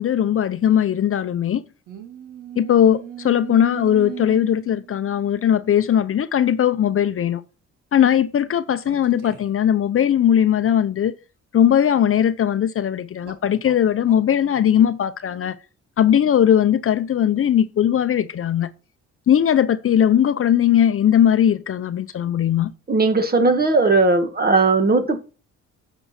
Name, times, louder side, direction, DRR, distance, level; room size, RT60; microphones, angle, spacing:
voice 1, 0.0-1.6 2.6-7.4 7.9-11.1 11.5-15.5 16.0-18.7 19.3-22.7, left 9 dB, 45° left, 0.7 m, -19 dB
sound 1, 1.9-5.8 6.7-6.9 8.9-9.7 13.2-14.3, right 10 dB, 80° right, 2.0 m, -38 dB
voice 2, 22.9-25.2, right 3 dB, 30° right, 1.8 m, -17 dB
10.0 x 7.1 x 4.3 m
cardioid pair, 90°, 30 cm